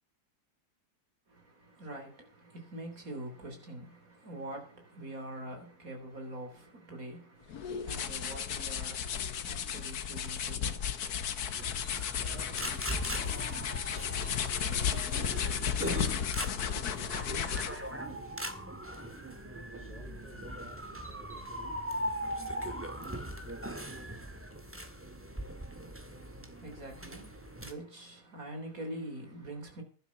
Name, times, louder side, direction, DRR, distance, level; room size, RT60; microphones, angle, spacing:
voice 1, 1.3-11.1 25.3-29.8, right 1 dB, 55° right, 4.1 m, -45 dB
sound 1, 7.5-17.9, left 8 dB, 70° left, 1.6 m, -34 dB
sound 2, 11.5-27.7, equal, 10° right, 1.8 m, -40 dB
voice 2, 12.2-13.4 14.1-21.9, right 3 dB, 90° right, 2.9 m, -54 dB
12.0 x 10.5 x 5.7 m
omnidirectional pair, 1.8 m